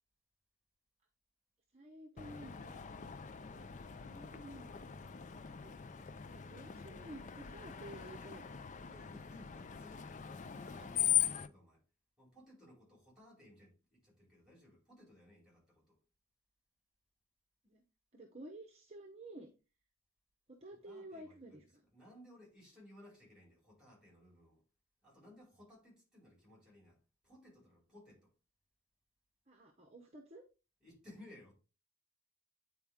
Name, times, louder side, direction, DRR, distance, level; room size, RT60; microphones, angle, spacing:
voice 1, 1.7-2.8 3.4-4.9 5.6-6.1 6.3-8.8 17.6-17.8 18.1-19.5 20.5-21.9 29.5-30.4, right 1 dB, 30° right, 1.0 m, -53 dB
Screech, 2.2-11.5, left 11 dB, 35° left, 0.4 m, -40 dB
voice 2, 8.9-11.8 12.2-16.0 20.7-21.6 21.9-24.6 25.0-28.3 30.8-31.5, left 1 dB, 5° right, 4.8 m, -60 dB
9.2 x 4.6 x 3.6 m
head